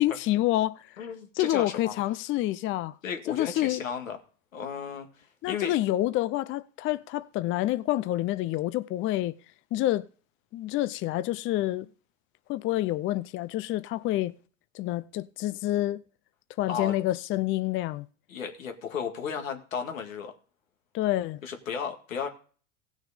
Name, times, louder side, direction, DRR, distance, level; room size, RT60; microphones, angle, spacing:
voice 1, 0.0-1.0 1.4-3.0 3.3-3.8 5.4-9.3 9.7-10.1 10.5-11.9 12.5-14.3 14.7-16.0 16.6-18.1 20.9-21.4, left 15 dB, 30° left, 0.5 m, -28 dB
voice 2, 1.0-1.9 3.0-4.2 4.5-5.7 16.7-16.9 18.3-20.3 21.4-22.3, left 7 dB, 90° left, 2.1 m, -34 dB
16.5 x 6.4 x 5.0 m
hypercardioid pair, 100°, 39 cm